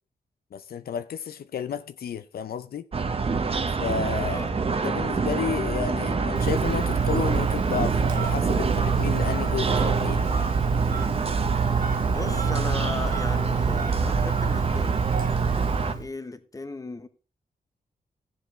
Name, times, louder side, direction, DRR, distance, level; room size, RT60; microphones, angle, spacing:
voice 1, 0.5-2.9 3.8-4.4 4.8-10.2 12.2-12.4, left 8 dB, 75° left, 0.5 m, -32 dB
sound 1, 2.9-15.9, right 4 dB, 35° right, 0.9 m, -27 dB
Telephone, 6.3-16.0, right 6 dB, 65° right, 0.9 m, -27 dB
voice 2, 12.0-15.1 15.7-17.1, left 3 dB, 20° left, 0.9 m, -36 dB
15.5 x 7.5 x 3.2 m
wide cardioid pair, 115°, 16 cm